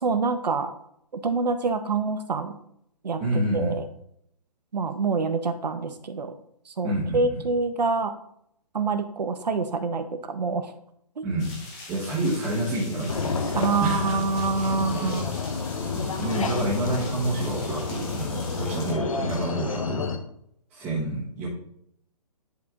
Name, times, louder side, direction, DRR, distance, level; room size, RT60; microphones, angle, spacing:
voice 1, 0.0-0.7 1.2-2.6 3.0-3.2 3.5-3.9 4.7-6.3 6.7-8.1 8.7-10.7 11.2-11.3 13.5-15.3, right 4 dB, 85° right, 8 dB, 1.3 m, -26 dB
voice 2, 3.2-3.7 6.8-7.4 11.2-11.5 11.9-14.4 15.4-15.5 15.9-20.1 20.7-21.5, right 1 dB, 5° right, -11 dB, 1.3 m, -28 dB
sound 1, 11.4-18.9, left 2 dB, 10° left, 0.8 m, -43 dB
sound 2, 13.1-20.2, left 4 dB, 55° left, 1.1 m, -30 dB
10.5 x 4.5 x 3.7 m, 0.71 s
hypercardioid pair, 175°, 21 cm